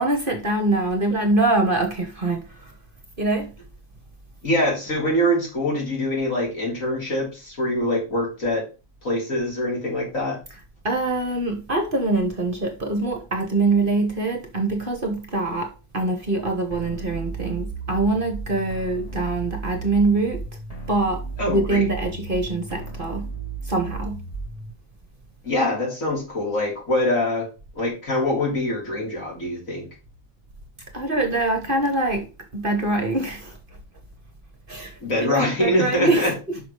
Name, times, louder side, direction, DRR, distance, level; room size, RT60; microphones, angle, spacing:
voice 1, 0.0-2.7 3.2-3.5 10.8-15.7 15.9-20.4 20.9-21.2 21.5-23.3 23.6-24.2 30.9-32.3 32.5-33.6 34.7-34.9 35.2-36.2, right 2 dB, 40° right, 1.3 m, -24 dB
voice 2, 4.4-8.6 9.0-10.4 21.4-21.8 25.4-27.5 27.8-29.9 35.0-36.3, left 1 dB, 60° left, 3.6 m, -24 dB
sound 1, 16.7-24.7, right 4 dB, 25° left, 1.5 m, -34 dB
6.2 x 5.7 x 4.8 m
omnidirectional pair, 1.6 m